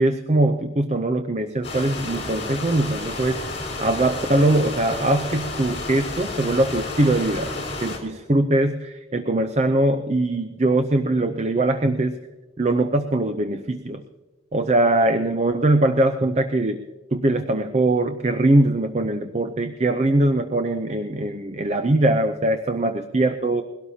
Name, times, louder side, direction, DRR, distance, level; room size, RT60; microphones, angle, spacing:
voice 1, 0.0-3.4 3.8-12.2 12.6-14.0 14.5-16.8 17.1-23.6, right 2 dB, 35° right, 8 dB, 0.6 m, -21 dB
sound 1, 1.6-8.0, left 2 dB, 30° left, 4.4 m, -31 dB
22.0 x 17.5 x 2.8 m, 1.2 s
head